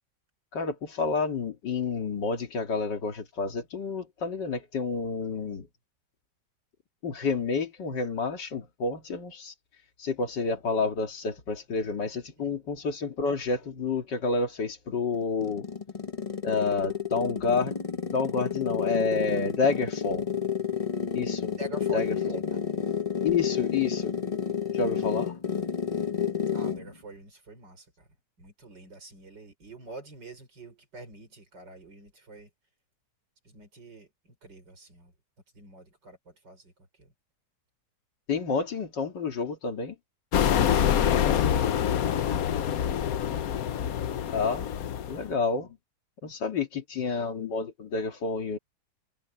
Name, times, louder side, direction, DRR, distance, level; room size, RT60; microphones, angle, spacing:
voice 1, 0.5-5.7 7.0-9.5 10.0-15.7 16.4-20.3 21.1-21.5 21.9-22.4 23.2-24.1 24.7-25.3 38.3-40.0 44.3-44.7 45.1-45.8 46.2-48.6, left 4 dB, 80° left, 2.7 m, -29 dB
sound 1, 15.1-26.9, left 7 dB, 25° left, 0.9 m, -30 dB
voice 2, 21.6-22.6 26.5-28.1 28.4-32.5 33.4-35.1 35.5-37.1 40.3-42.3, right 2 dB, 80° right, 6.3 m, -46 dB
sound 2, 40.3-45.3, left 9 dB, 60° left, 1.2 m, -26 dB
omnidirectional pair, 1.9 m